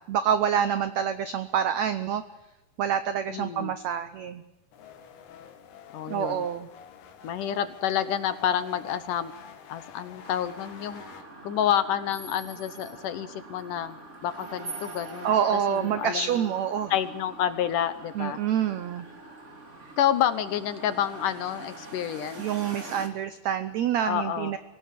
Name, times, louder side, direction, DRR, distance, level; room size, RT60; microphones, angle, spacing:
voice 1, 0.1-2.2 2.8-4.4 6.1-6.7 15.2-16.9 18.1-19.0 22.4-24.6, right 8 dB, 85° right, 11 dB, 1.5 m, -27 dB
voice 2, 3.3-3.7 5.9-6.5 7.2-9.3 9.7-11.0 11.4-15.3 15.7-16.5 16.9-18.4 20.0-22.4 24.0-24.5, left 10 dB, 70° left, 12 dB, 2.3 m, -29 dB
sound 1, 4.7-11.2, left 7 dB, 90° left, 3.7 m, -48 dB
sound 2, 10.2-23.1, right 3 dB, 20° right, 2.4 m, -44 dB
24.0 x 17.5 x 8.5 m, 1.0 s
omnidirectional pair, 4.4 m